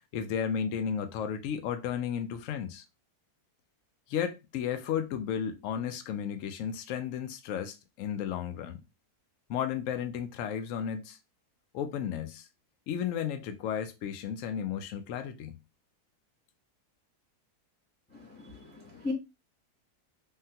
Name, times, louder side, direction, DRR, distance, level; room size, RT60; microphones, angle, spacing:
voice 1, 0.1-2.8 4.1-8.8 9.5-11.2 11.7-12.5 12.9-15.6, left 8 dB, 70° left, 0.8 m, -33 dB
voice 2, 18.4-19.1, left 3 dB, 15° left, 0.3 m, -37 dB
3.6 x 2.1 x 2.7 m
omnidirectional pair, 1.7 m